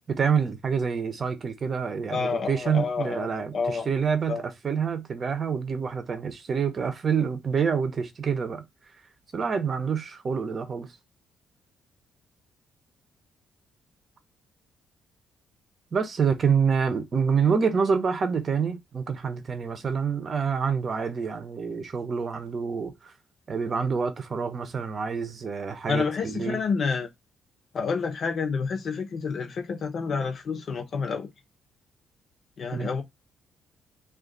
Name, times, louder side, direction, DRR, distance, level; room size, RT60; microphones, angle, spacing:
voice 1, 0.1-8.6 9.3-10.9 15.9-23.1 23.5-26.6 32.7-32.9, right 6 dB, 40° right, 0.7 m, -27 dB
voice 2, 2.1-3.3 3.5-3.9 4.3-4.4 25.9-27.1 27.7-31.3 32.6-33.0, left 5 dB, 55° left, 0.8 m, -29 dB
2.5 x 2.5 x 3.8 m
cardioid pair, 90°, 0 cm